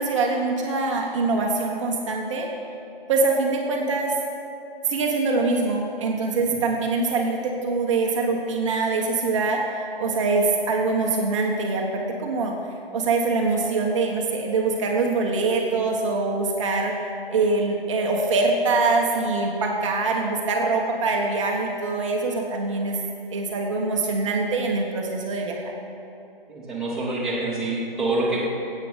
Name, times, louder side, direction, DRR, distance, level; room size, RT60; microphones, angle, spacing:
voice 1, 0.0-2.5 3.1-4.1 4.8-9.6 10.0-12.5 12.9-16.9 17.3-23.0 23.3-25.6, right 3 dB, 30° right, 0 dB, 1.3 m, -24 dB
voice 2, 26.5-28.4, right 2 dB, ahead, -10 dB, 2.4 m, -26 dB
16.5 x 8.6 x 5.2 m, 2.7 s
figure-of-eight pair, 145°, 29 cm